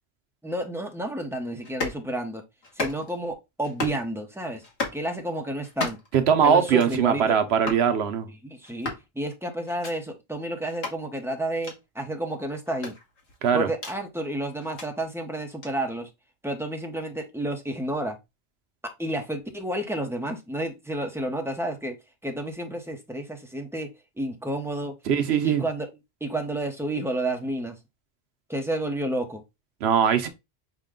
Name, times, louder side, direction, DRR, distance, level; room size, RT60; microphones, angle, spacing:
voice 1, 0.4-2.4 2.7-4.6 4.9-6.0 6.4-7.4 8.4-12.9 13.5-16.1 16.4-18.2 18.8-21.9 22.2-23.9 24.2-24.9 25.3-25.9 26.2-27.8 28.5-29.4, right 1 dB, 5° right, 0.6 m, -30 dB
sound 1, 1.6-2.0 2.6-3.2 3.6-4.0 4.6-5.0 5.6-6.2 6.6-7.0 7.6-7.9 8.6-9.1 9.6-9.9 10.7-11.0 11.6-11.8 12.7-14.0 14.6-14.9 15.6-15.7, left 3 dB, 90° left, 1.6 m, -34 dB
voice 2, 6.1-8.3 13.4-13.7 25.1-25.6 29.8-30.3, right 7 dB, 75° right, 0.9 m, -21 dB
6.1 x 2.2 x 3.6 m
omnidirectional pair, 1.1 m